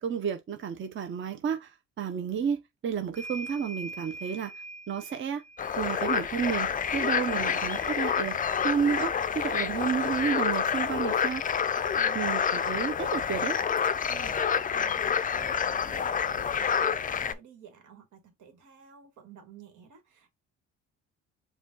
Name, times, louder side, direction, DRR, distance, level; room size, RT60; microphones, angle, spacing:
voice 1, 0.0-4.5 4.9-5.4 5.8-11.4 12.1-13.6, right 7 dB, 40° right, 0.7 m, -31 dB
sound 1, 3.1-11.3 12.5-12.6 12.9-14.0, right 2 dB, 25° right, 1.1 m, -47 dB
sound 2, 5.6-17.3, left 7 dB, 30° left, 0.4 m, -28 dB
voice 2, 11.9-12.7 14.1-20.3, right 8 dB, 80° right, 1.5 m, -51 dB
5.0 x 2.3 x 3.8 m
cardioid pair, 90°, 30 cm